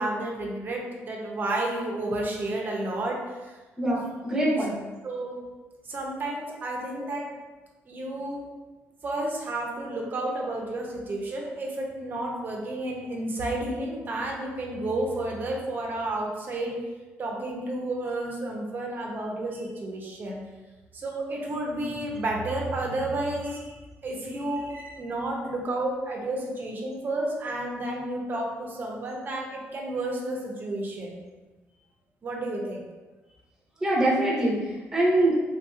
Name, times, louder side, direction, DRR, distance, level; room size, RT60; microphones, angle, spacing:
voice 1, 0.0-3.1 3.4-3.5 5.0-5.3 5.9-7.3 7.9-8.4 9.0-16.7 17.2-20.4 20.9-23.7 24.0-31.2 32.2-32.9, right 2 dB, 40° right, -1 dB, 0.6 m, -31 dB
voice 2, 3.8-4.7 33.8-35.4, right 1 dB, 10° right, -5 dB, 0.9 m, -24 dB
3.5 x 2.8 x 2.4 m, 1.2 s
cardioid pair, 125°, 5 cm